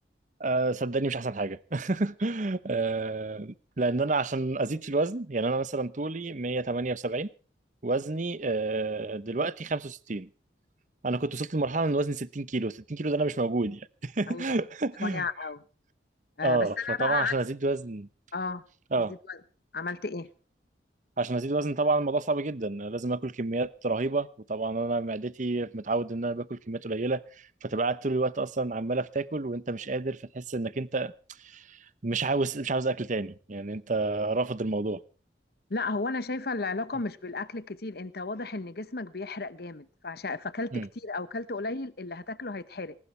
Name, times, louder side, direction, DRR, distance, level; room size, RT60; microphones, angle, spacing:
voice 1, 0.4-7.3 7.8-10.3 11.0-15.3 16.4-18.1 18.9-19.1 21.2-31.1 31.4-35.0 40.7-40.9, right 3 dB, 45° right, 0.9 m, -29 dB
voice 2, 15.0-15.6 16.4-17.4 18.3-18.6 19.1-19.4 19.7-20.3 35.7-42.9, left 3 dB, 60° left, 1.0 m, -33 dB
20.0 x 19.0 x 3.3 m
head